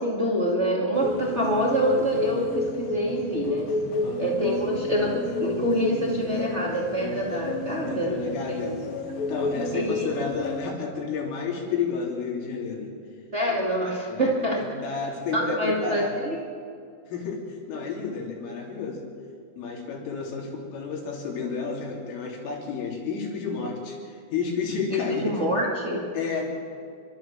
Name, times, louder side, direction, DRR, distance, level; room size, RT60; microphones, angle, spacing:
voice 1, 0.0-3.6 4.2-8.1 8.5-8.6 9.7-10.1 13.3-14.6 15.3-16.4 24.9-26.1, equal, 45° right, -2 dB, 0.9 m, -26 dB
sound 1, 0.9-10.7, left 2 dB, 55° left, 3.0 m, -30 dB
voice 2, 4.0-4.4 7.9-8.8 9.3-12.9 14.1-14.3 14.5-16.1 17.1-19.0 19.6-25.4 26.1-26.5, left 5 dB, 75° left, -1 dB, 5.9 m, -31 dB
29.5 x 12.5 x 7.4 m, 2.3 s
omnidirectional pair, 5.8 m